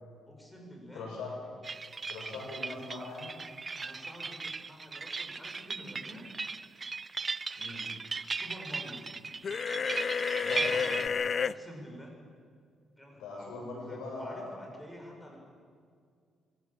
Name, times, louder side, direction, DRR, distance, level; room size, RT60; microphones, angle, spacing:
voice 1, 0.2-1.4 3.8-6.3 8.3-9.0 11.4-12.1 13.0-15.4, equal, 5° left, 0 dB, 7.1 m, -48 dB
voice 2, 0.9-1.3 2.1-3.3 7.6-7.9 10.3-11.0 13.2-14.5, left 3 dB, 85° left, -1 dB, 7.5 m, -41 dB
sound 1, 1.6-11.1, right 4 dB, 30° right, 0.6 m, -38 dB
sound 2, 9.4-11.5, left 6 dB, 45° left, 0.5 m, -30 dB
23.5 x 17.0 x 7.6 m, 2.1 s
cardioid pair, 90°, 0 cm